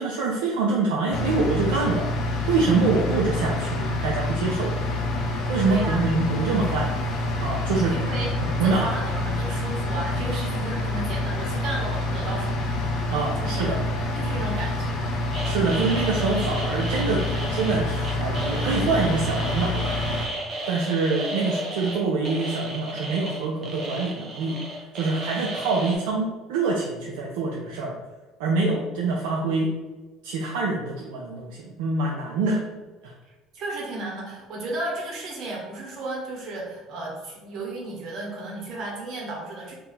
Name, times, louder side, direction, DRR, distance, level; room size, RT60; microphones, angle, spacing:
voice 1, 0.0-4.7 5.5-6.9 7.4-8.0 8.4-8.9 13.1-13.8 15.4-17.2 17.5-20.2 20.7-24.6 24.9-27.9 28.4-29.7 30.2-32.6 33.0-33.1, right 3 dB, 80° right, -2 dB, 0.5 m, -25 dB
sound 1, 1.1-20.3, left 1 dB, 55° left, 0.7 m, -27 dB
voice 2, 5.7-6.0 7.8-8.3 8.6-12.9 13.4-13.8 14.1-15.1 33.5-39.7, right 2 dB, 60° right, -2 dB, 1.2 m, -34 dB
sound 2, 15.3-26.0, right 1 dB, 40° right, 0.9 m, -34 dB
2.7 x 2.6 x 3.9 m, 1.2 s
hypercardioid pair, 75°, 0 cm